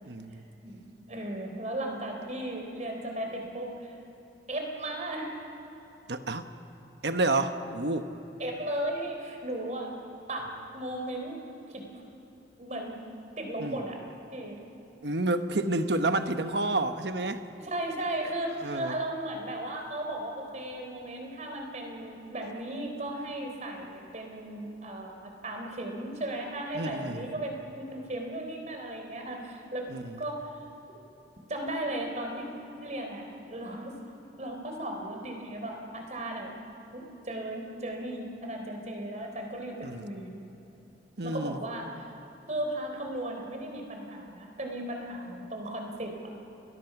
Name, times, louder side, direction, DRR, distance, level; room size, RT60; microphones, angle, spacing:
voice 1, 0.0-0.4 6.1-6.5 7.0-8.1 13.6-13.8 15.0-17.4 18.6-18.9 26.7-27.3 29.9-30.2 39.8-40.1 41.2-41.6, right 2 dB, 65° right, 8 dB, 1.1 m, -29 dB
voice 2, 1.1-3.9 4.5-5.3 8.4-9.9 10.3-11.4 11.7-12.0 12.6-13.0 13.4-14.0 14.3-14.6 17.6-29.9 30.2-30.4 31.5-32.5 32.8-34.0 34.4-36.5 36.9-40.3 41.2-42.1 42.5-46.3, right 1 dB, 40° right, 2 dB, 3.6 m, -36 dB
29.5 x 21.5 x 6.0 m, 3.0 s
head